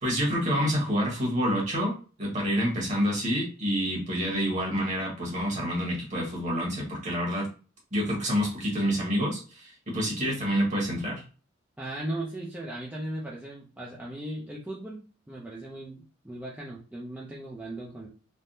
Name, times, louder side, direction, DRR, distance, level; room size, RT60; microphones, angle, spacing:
voice 1, 0.0-1.9 2.2-7.5 7.9-11.2, equal, 40° right, -3 dB, 1.2 m, -28 dB
voice 2, 11.8-18.1, right 1 dB, 10° right, -4 dB, 0.4 m, -37 dB
3.4 x 2.1 x 2.6 m, 0.36 s
head